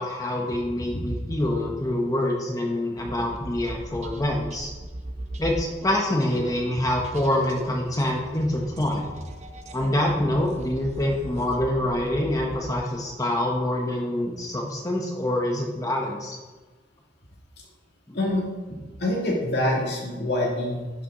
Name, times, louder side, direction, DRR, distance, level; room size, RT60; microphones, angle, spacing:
voice 1, 0.0-4.7 5.4-9.1 9.7-16.4, left 1 dB, 20° left, 0 dB, 0.8 m, -26 dB
sound 1, 3.0-13.1, right 1 dB, 40° right, 0.7 m, -39 dB
voice 2, 19.0-21.0, left 1 dB, 65° left, -3 dB, 2.2 m, -25 dB
10.5 x 5.8 x 3.7 m, 1.3 s
head